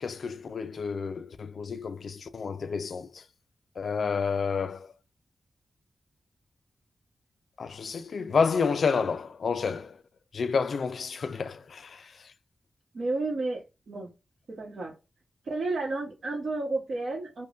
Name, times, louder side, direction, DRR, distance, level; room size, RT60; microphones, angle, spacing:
voice 1, 0.0-3.2 3.8-4.9 7.6-10.0 10.3-12.3, left 5 dB, 70° left, 0.3 m, -30 dB
voice 2, 12.9-14.1 14.5-14.9 15.4-17.5, right 2 dB, 70° right, 1.1 m, -31 dB
5.3 x 2.2 x 2.4 m
wide cardioid pair, 120°, 0 cm